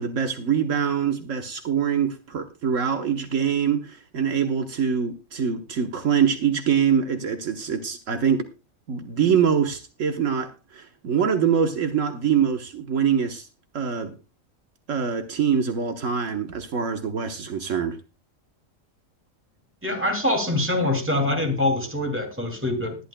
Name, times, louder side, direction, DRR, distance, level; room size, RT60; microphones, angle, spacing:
voice 1, 0.0-8.5 8.9-13.5 13.7-14.1 14.9-18.0, right 7 dB, 70° right, 1.4 m, -24 dB
voice 2, 19.8-23.0, left 1 dB, 10° right, 2.4 m, -24 dB
20.0 x 11.0 x 2.2 m
omnidirectional pair, 1.4 m